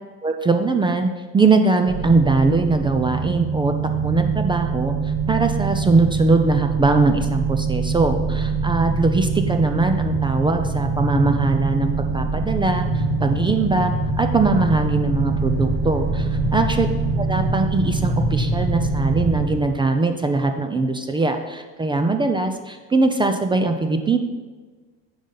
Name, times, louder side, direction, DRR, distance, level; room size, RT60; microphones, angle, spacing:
voice 1, 0.2-5.0 5.3-13.9 14.2-16.9 17.2-24.2, right 3 dB, 15° right, 6 dB, 0.3 m, -21 dB
sound 1, 1.9-19.5, right 4 dB, 35° right, 1.8 m, -23 dB
9.4 x 5.2 x 3.9 m, 1.4 s
supercardioid pair, 120°, 37 cm